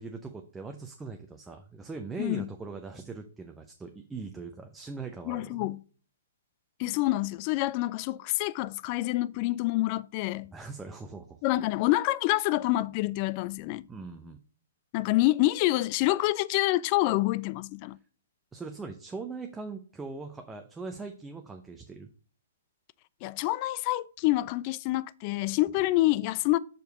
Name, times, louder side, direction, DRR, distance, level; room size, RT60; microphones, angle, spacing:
voice 1, 0.0-5.7 10.5-11.4 13.9-14.4 18.5-22.1, right 4 dB, 10° right, 0.6 m, -41 dB
voice 2, 5.3-5.8 6.8-10.5 11.4-13.8 14.9-18.0 23.2-26.6, left 18 dB, 40° left, 0.3 m, -27 dB
5.2 x 4.6 x 6.2 m
figure-of-eight pair, 120°, 0 cm